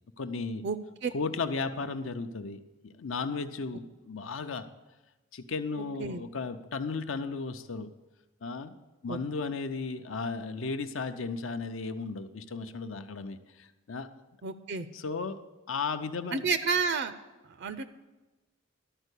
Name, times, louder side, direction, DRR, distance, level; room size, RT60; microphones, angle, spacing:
voice 1, 0.2-0.7 1.1-4.7 5.3-7.9 8.4-8.7 9.0-14.1 14.9-15.4 15.7-16.5, left 4 dB, 75° left, 9 dB, 0.6 m, -35 dB
voice 2, 14.4-14.9 16.3-17.1 17.6-17.8, right 5 dB, 60° right, 11 dB, 0.5 m, -30 dB
12.0 x 4.5 x 8.2 m, 1.1 s
head